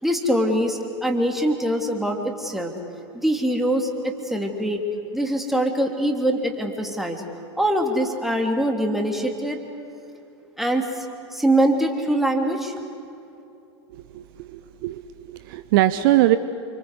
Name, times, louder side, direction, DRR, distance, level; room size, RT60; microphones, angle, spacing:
voice 1, 0.0-2.7 3.1-4.8 5.1-7.2 7.6-9.6 10.6-11.0 11.3-12.7, right 1 dB, ahead, 3 dB, 3.1 m, -23 dB
voice 2, 13.9-16.4, right 15 dB, 50° right, 13 dB, 0.9 m, -22 dB
28.5 x 25.5 x 8.3 m, 2.8 s
figure-of-eight pair, 90°, 15 cm